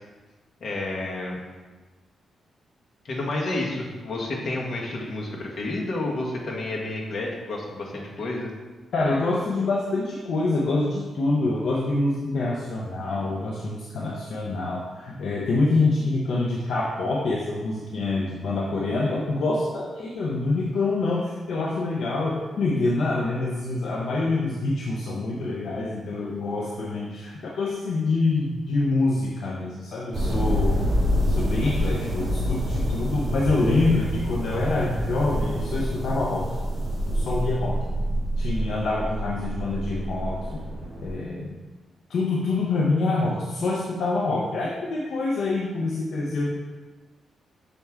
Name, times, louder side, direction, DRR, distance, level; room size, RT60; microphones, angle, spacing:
voice 1, 0.6-1.4 3.0-8.5, left 2 dB, 50° left, -2 dB, 1.4 m, -30 dB
voice 2, 8.9-30.8 31.3-36.5 37.1-37.8 38.4-40.6 41.0-41.5 42.1-46.5, left 2 dB, 70° left, -3 dB, 0.8 m, -26 dB
sound 1, 30.1-41.1, equal, 35° right, 1.4 m, -27 dB
6.7 x 4.6 x 3.6 m, 1.3 s
cardioid pair, 125°, 0 cm